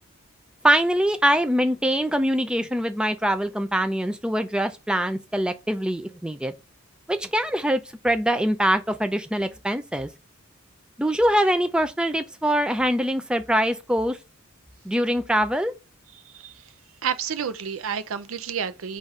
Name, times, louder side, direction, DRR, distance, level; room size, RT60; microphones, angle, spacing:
voice 1, 0.6-6.5 7.1-10.1 11.0-14.2 14.9-15.7, equal, 5° right, 0.4 m, -23 dB
voice 2, 17.0-19.0, right 7 dB, 70° right, 0.5 m, -30 dB
4.0 x 2.5 x 4.6 m
head